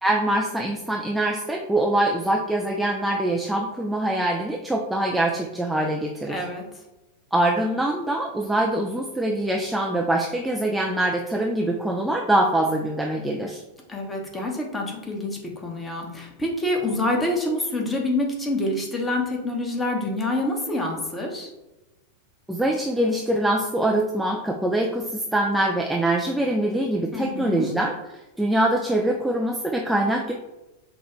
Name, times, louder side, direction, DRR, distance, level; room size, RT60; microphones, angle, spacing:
voice 1, 0.0-6.4 7.3-13.6 22.5-27.9 28.4-30.3, right 1 dB, 5° right, 0 dB, 0.4 m, -24 dB
voice 2, 6.3-6.6 13.9-21.5 27.1-27.7, left 1 dB, 15° left, 0 dB, 1.0 m, -27 dB
5.4 x 2.3 x 3.0 m, 1.0 s
figure-of-eight pair, 90°, 0 cm